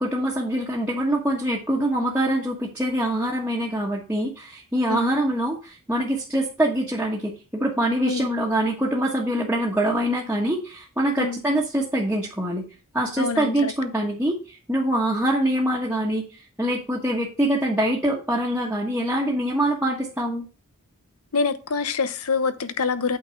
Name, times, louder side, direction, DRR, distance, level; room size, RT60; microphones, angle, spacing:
voice 1, 0.0-12.6 12.9-16.2 16.6-20.4, right 1 dB, 10° right, 1.3 m, -24 dB
voice 2, 13.2-13.7 21.3-23.2, left 4 dB, 80° left, 0.9 m, -25 dB
8.6 x 4.0 x 6.4 m
head